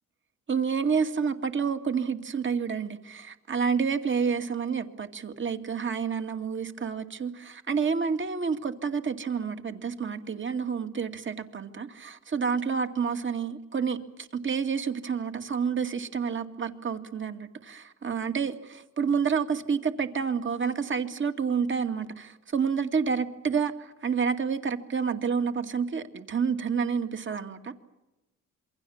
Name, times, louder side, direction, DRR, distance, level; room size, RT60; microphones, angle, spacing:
voice 1, 0.5-18.5 19.0-27.7, right 6 dB, 40° right, 2.3 m, -29 dB
27.5 x 23.5 x 7.3 m
cardioid pair, 90°, 30 cm